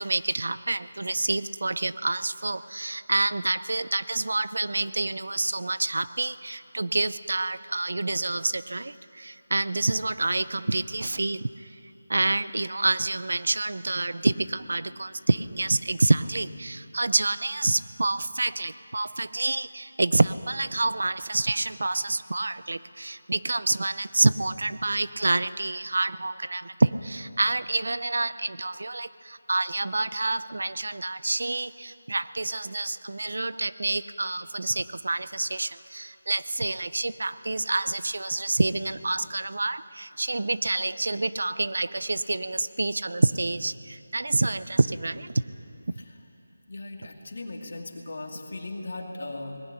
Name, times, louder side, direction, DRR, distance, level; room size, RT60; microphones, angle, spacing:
voice 1, 0.0-11.7 12.1-45.3, right 2 dB, 60° right, 15 dB, 0.6 m, -27 dB
voice 2, 45.9-46.3 46.7-49.6, left 2 dB, 45° left, 2 dB, 2.5 m, -38 dB
19.0 x 17.5 x 10.0 m, 2.8 s
figure-of-eight pair, 180°, 0 cm